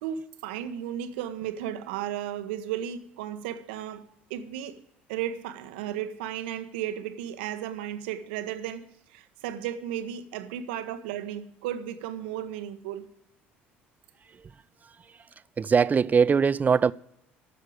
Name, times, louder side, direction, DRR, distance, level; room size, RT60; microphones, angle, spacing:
voice 1, 0.0-4.0 4.3-4.8 5.1-13.0, right 10 dB, 75° right, 1.0 m, -34 dB
voice 2, 15.6-16.9, right 6 dB, 30° right, 0.4 m, -21 dB
10.0 x 6.6 x 8.6 m
hypercardioid pair, 65°, 6 cm